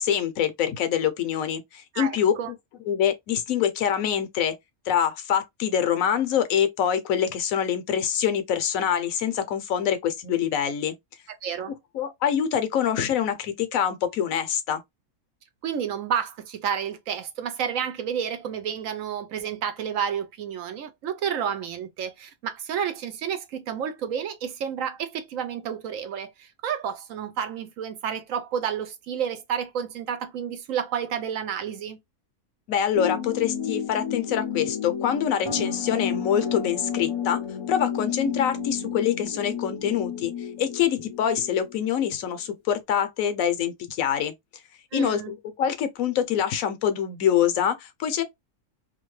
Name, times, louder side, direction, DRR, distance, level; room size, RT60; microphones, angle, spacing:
voice 1, 0.0-2.3 2.9-4.5 4.9-10.9 11.9-14.8 32.7-37.4 37.7-40.3 40.6-44.3 44.9-48.2, left 9 dB, 75° left, 1.0 m, -25 dB
voice 2, 1.9-2.5 11.3-11.7 15.6-32.0 44.9-45.3, right 8 dB, 70° right, 1.0 m, -30 dB
sound 1, 32.9-41.8, left 7 dB, 40° left, 0.4 m, -31 dB
2.8 x 2.5 x 3.1 m
omnidirectional pair, 1.5 m